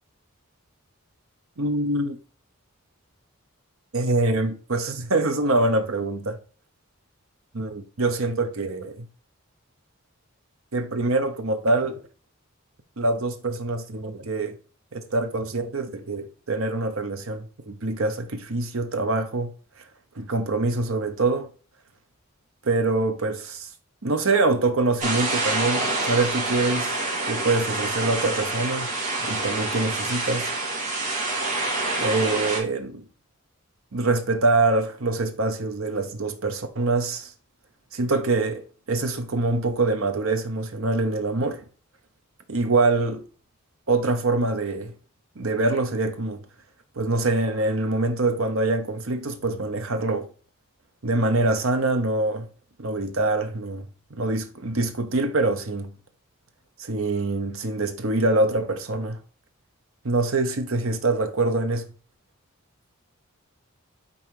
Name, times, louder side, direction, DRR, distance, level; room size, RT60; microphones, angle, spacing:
voice 1, 1.6-2.2 3.9-6.4 7.5-9.1 10.7-12.0 13.0-14.6 14.9-19.5 20.1-21.5 22.6-23.7 24.0-27.0 27.3-28.9 29.2-30.5 32.0-33.0 33.9-37.3 37.9-41.6 42.5-43.2 43.9-44.9 45.4-46.4 47.0-50.3 51.0-52.5 52.8-55.9 56.8-59.2 60.0-61.8, right 2 dB, 70° right, 0.9 m, -24 dB
sound 1, 25.0-32.6, right 2 dB, 35° right, 1.7 m, -27 dB
5.5 x 3.9 x 4.7 m
head